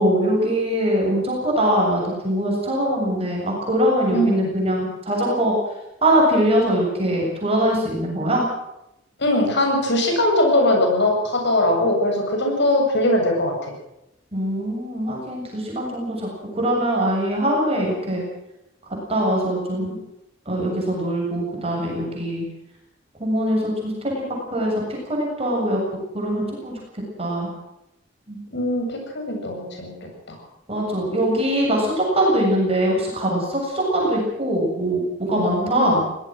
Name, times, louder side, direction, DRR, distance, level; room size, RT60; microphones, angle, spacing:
voice 1, 0.0-5.5 6.0-8.5 14.3-16.3 16.5-18.2 19.1-20.0 20.5-22.4 23.2-24.2 24.5-24.7 25.1-25.8 26.1-26.7 27.2-27.5 28.3-28.4 30.7-36.0, right 1 dB, 30° right, -2 dB, 7.4 m, -22 dB
voice 2, 4.1-4.5 9.2-13.7 28.5-29.9 30.3-30.4 35.3-36.0, left 1 dB, 65° left, 2 dB, 8.0 m, -21 dB
23.5 x 18.0 x 6.3 m, 0.89 s
head